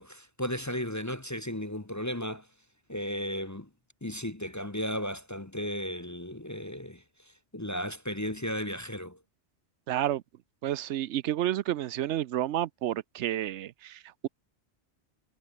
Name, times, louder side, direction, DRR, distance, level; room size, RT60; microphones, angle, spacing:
voice 1, 0.0-2.5 2.9-3.7 4.0-9.2, equal, 15° left, 1.0 m, -35 dB
voice 2, 9.9-10.2 10.6-14.3, right 12 dB, 80° right, 0.9 m, -30 dB
omnidirectional pair, 1.2 m